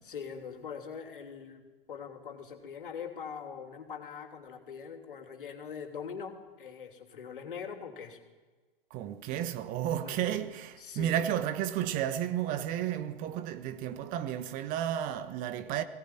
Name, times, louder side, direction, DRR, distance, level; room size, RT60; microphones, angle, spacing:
voice 1, 0.0-8.2 10.0-10.4 10.8-11.3, left 6 dB, 65° left, 3.4 m, -42 dB
voice 2, 8.9-15.8, right 11 dB, 30° right, 1.4 m, -32 dB
21.5 x 18.0 x 9.1 m
figure-of-eight pair, 110°, 29 cm